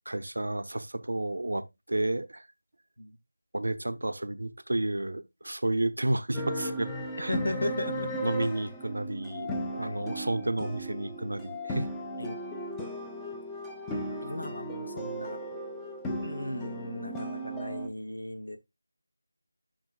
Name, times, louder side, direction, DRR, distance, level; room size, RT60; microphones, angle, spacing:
voice 1, 0.1-2.5 3.5-6.9 7.2-7.4 8.2-11.9, right 1 dB, 75° right, 0.7 m, -31 dB
sound 1, 6.3-17.9, equal, 5° left, 0.6 m, -36 dB
voice 2, 7.3-8.1 9.8-10.0 12.2-12.4 14.2-15.4 16.2-18.6, left 1 dB, 85° left, 0.9 m, -36 dB
11.5 x 3.9 x 2.3 m
figure-of-eight pair, 165°, 0 cm